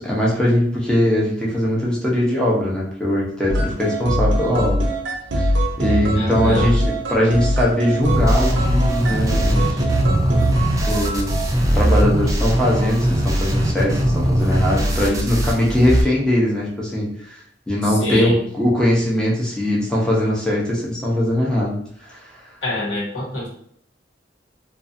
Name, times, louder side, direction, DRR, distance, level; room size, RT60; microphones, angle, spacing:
voice 1, 0.0-4.8 5.4-5.5 5.8-9.9 10.9-17.4 17.7-21.8 22.0-22.2, left 1 dB, 5° left, -5 dB, 0.7 m, -20 dB
sound 1, 3.5-11.5, right 1 dB, 85° right, 0.5 m, -22 dB
voice 2, 6.1-6.7 17.9-18.4 22.6-23.5, left 1 dB, 85° left, -6 dB, 1.2 m, -26 dB
sound 2, 8.0-16.0, right 1 dB, 20° right, 0.3 m, -20 dB
2.6 x 2.4 x 2.5 m, 0.65 s
head